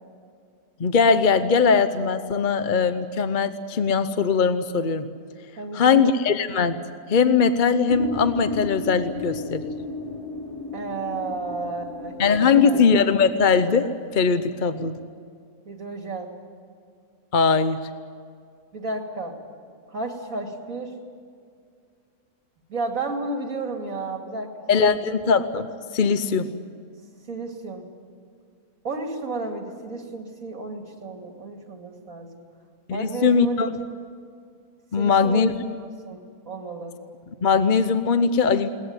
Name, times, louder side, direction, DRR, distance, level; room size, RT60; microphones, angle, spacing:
voice 1, 0.8-5.1 5.7-6.8 7.1-9.6 12.2-15.0 17.3-17.8 24.7-26.5 32.9-33.8 34.9-35.6 37.4-38.7, left 5 dB, 40° left, 10 dB, 0.8 m, -20 dB
voice 2, 5.6-6.0 10.7-12.8 15.7-16.3 18.7-19.4 19.9-20.9 22.7-24.5 25.0-25.1 27.3-27.8 28.8-32.4 32.9-33.7 34.9-37.0, right 3 dB, 65° right, 3 dB, 3.0 m, -32 dB
sound 1, 7.9-14.1, left 3 dB, 15° left, 3.3 m, -35 dB
21.5 x 19.5 x 9.6 m, 2.2 s
omnidirectional pair, 1.5 m